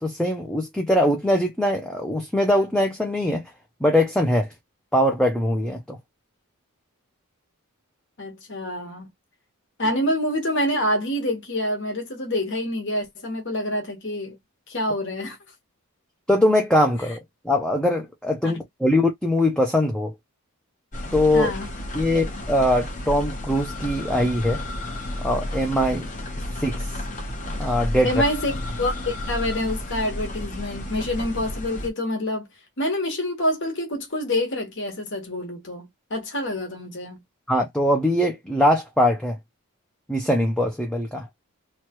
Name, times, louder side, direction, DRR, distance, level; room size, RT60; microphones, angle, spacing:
voice 1, 0.0-3.4 3.8-4.5 4.9-6.0 16.3-17.2 17.4-20.1 21.1-21.5 21.9-24.6 25.2-26.0 26.6-26.9 27.6-28.1 37.5-39.3 40.1-41.3, left 1 dB, 5° left, 0.4 m, -22 dB
voice 2, 8.2-9.1 9.8-14.4 14.7-15.4 18.4-18.5 21.3-21.7 28.0-32.5 32.8-37.2, left 1 dB, 55° left, 1.3 m, -27 dB
sound 1, 20.9-31.9, left 1 dB, 35° left, 0.9 m, -32 dB
3.1 x 2.2 x 2.9 m
head